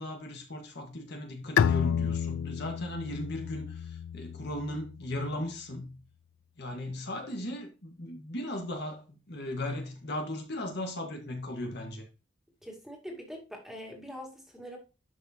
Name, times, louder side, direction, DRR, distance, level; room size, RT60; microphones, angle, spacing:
voice 1, 0.0-6.0 6.6-12.0, left 1 dB, 55° left, 1.8 m, -37 dB
Bowed string instrument, 1.6-5.0, left 8 dB, 70° left, 0.3 m, -30 dB
voice 2, 12.6-14.8, equal, ahead, 2.4 m, -43 dB
11.5 x 6.1 x 2.9 m
head